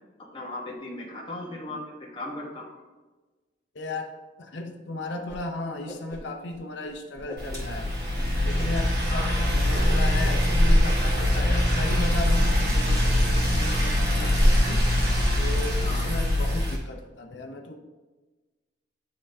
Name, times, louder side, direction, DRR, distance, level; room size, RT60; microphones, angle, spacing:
voice 1, 0.3-1.8 2.1-2.7 9.1-9.8 15.8-16.1, left 2 dB, 30° left, -3 dB, 1.1 m, -37 dB
voice 2, 3.7-4.1 4.4-7.9 8.4-14.9 15.4-17.8, left 2 dB, 70° left, 4 dB, 0.7 m, -35 dB
Whoosh swoosh swish, 5.3-5.4 5.7-6.6 6.8-8.7 9.1-9.5 9.7-9.9 10.2-10.7 11.0-11.5, equal, 20° right, 2.1 m, -43 dB
sound 1, 7.4-16.8, left 1 dB, 60° right, 1.7 m, -22 dB
11.0 x 3.6 x 2.7 m, 1.2 s
head